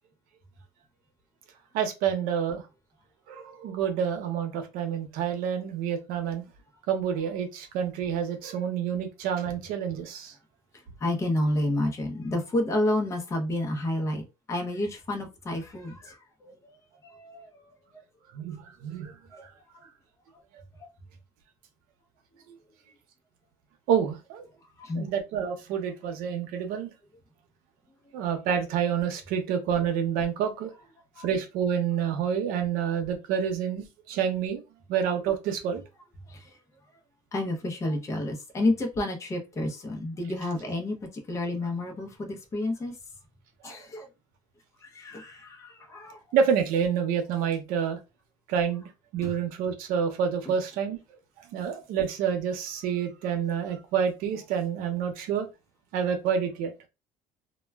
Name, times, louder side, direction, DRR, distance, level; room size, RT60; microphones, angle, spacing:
voice 1, 1.7-2.6 3.3-6.4 6.9-10.3 18.3-19.1 23.9-24.5 25.0-26.9 28.1-30.7 31.2-34.6 34.9-35.8 43.6-43.7 46.3-48.0 48.5-51.0 51.5-55.5 55.9-56.7, right 8 dB, 85° right, 0.7 m, -28 dB
voice 2, 11.0-16.8 17.0-18.0 19.3-19.5 20.8-20.9 22.4-22.6 24.8-25.1 31.2-31.3 36.3-36.6 37.3-43.0 43.6-44.1 44.8-46.2 49.2-49.3 50.5-50.6, left 1 dB, 20° left, 0.6 m, -30 dB
2.2 x 2.1 x 3.3 m
cardioid pair, 135°, 15 cm